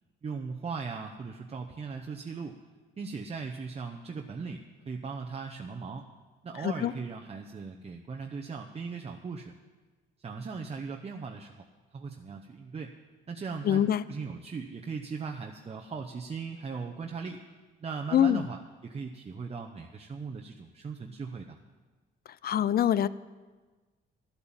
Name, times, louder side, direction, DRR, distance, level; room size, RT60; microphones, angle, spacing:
voice 1, 0.2-2.6 3.0-6.1 6.4-9.5 10.2-11.6 11.9-12.9 13.3-17.4 17.8-21.6, right 5 dB, 30° right, 2 dB, 0.8 m, -38 dB
voice 2, 6.6-6.9 13.6-14.0 18.1-18.5 22.4-23.1, left 10 dB, 50° left, 18 dB, 0.5 m, -24 dB
12.5 x 8.6 x 7.2 m, 1.3 s
cardioid pair, 90°, 20 cm